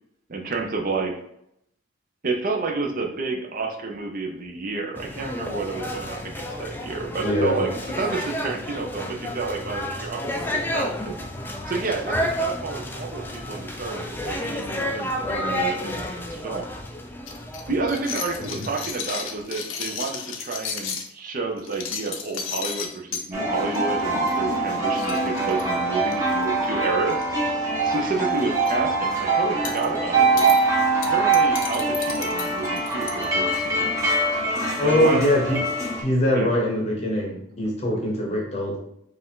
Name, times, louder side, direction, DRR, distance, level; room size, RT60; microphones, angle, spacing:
voice 1, 0.3-1.2 2.2-7.7 8.0-11.1 11.7-16.7 17.7-27.2 27.8-30.5 31.1-33.9 34.8-35.2 36.3-36.5, right 3 dB, 45° right, 3 dB, 0.6 m, -30 dB
sound 1, 5.0-18.9, equal, 10° left, 0.3 m, -31 dB
voice 2, 7.2-7.6 18.4-18.6 34.8-35.6 36.0-38.8, left 1 dB, 30° left, -1 dB, 0.8 m, -22 dB
sound 2, 17.3-21.1 21.6-23.2 23.7-24.0 24.3-24.4 24.7-24.8 25.0-26.3 27.1-27.5 27.8-27.9 28.3-28.7 29.6-29.9 30.4-30.6 31.0-33.2, left 6 dB, 80° left, 0.6 m, -33 dB
sound 3, 23.3-36.0, right 3 dB, 15° right, 0.9 m, -23 dB
4.6 x 2.5 x 3.7 m, 0.75 s
head